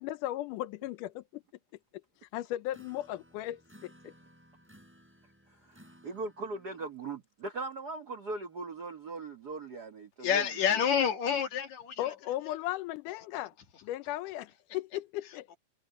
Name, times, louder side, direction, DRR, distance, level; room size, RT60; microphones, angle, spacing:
voice 1, 0.0-1.4 2.2-4.1 12.0-13.5 13.8-15.6, left 14 dB, 75° left, 2.1 m, -36 dB
sound 1, 2.7-6.9, equal, 5° right, 5.5 m, -59 dB
voice 2, 5.7-10.4, right 3 dB, 85° right, 0.8 m, -39 dB
voice 3, 10.2-12.1 12.4-12.5 15.2-15.6, left 8 dB, 60° left, 2.7 m, -29 dB
omnidirectional pair, 3.9 m